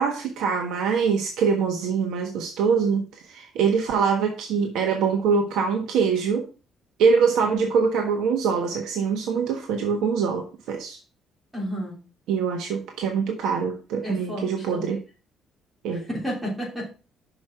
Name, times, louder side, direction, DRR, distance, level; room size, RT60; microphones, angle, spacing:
voice 1, 0.0-3.0 3.3-6.5 7.0-11.0 12.3-15.0 15.8-16.1, right 6 dB, 80° right, 1.4 m, -24 dB
voice 2, 11.5-12.0 14.0-14.4 14.7-14.8 16.1-16.9, equal, 10° right, 3.4 m, -30 dB
6.3 x 5.2 x 6.0 m
cardioid pair, 180°, 0 cm